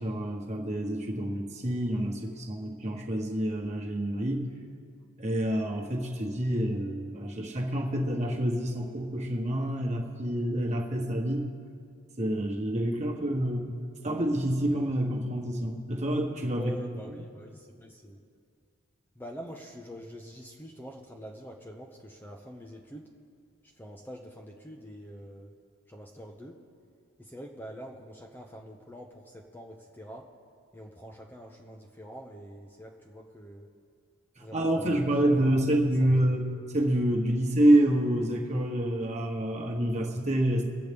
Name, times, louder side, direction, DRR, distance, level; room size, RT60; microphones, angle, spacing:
voice 1, 0.0-4.5 5.2-11.5 12.2-16.7 34.4-36.5 36.7-40.6, right 1 dB, 30° right, 1 dB, 1.3 m, -27 dB
voice 2, 16.6-18.2 19.1-23.1 23.6-25.5 25.9-26.6 27.2-30.3 30.7-33.7 34.4-35.1 35.4-36.4, equal, 10° left, 1 dB, 0.7 m, -45 dB
24.0 x 8.0 x 3.5 m, 2.3 s
head